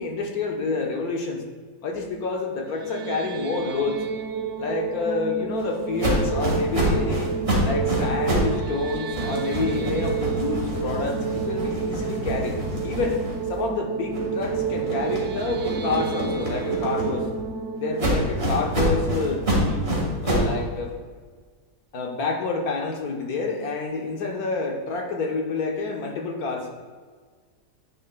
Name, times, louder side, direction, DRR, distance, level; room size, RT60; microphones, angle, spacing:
voice 1, 0.0-1.4 1.8-4.0 4.6-7.3 7.6-12.6 12.8-13.2 13.5-17.3 17.8-19.8 20.2-20.9 21.9-26.7, left 4 dB, 65° left, 2 dB, 1.5 m, -28 dB
sound 1, 2.6-19.7, right 6 dB, 70° right, 0.6 m, -30 dB
sound 2, 6.0-8.6 8.9-13.7 14.1-17.4 18.0-20.6, equal, 40° right, 2.0 m, -27 dB
9.8 x 9.3 x 2.2 m, 1.6 s
omnidirectional pair, 1.8 m